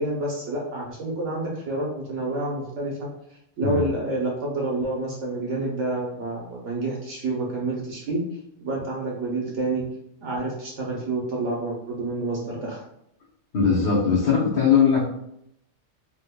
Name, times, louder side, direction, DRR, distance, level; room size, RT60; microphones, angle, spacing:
voice 1, 0.0-3.1 3.6-8.2 8.6-9.8 10.2-12.8, right 2 dB, 60° right, -3 dB, 1.1 m, -28 dB
voice 2, 13.5-15.1, left 6 dB, 45° left, -9 dB, 0.9 m, -20 dB
3.5 x 3.1 x 2.2 m, 0.77 s
omnidirectional pair, 1.5 m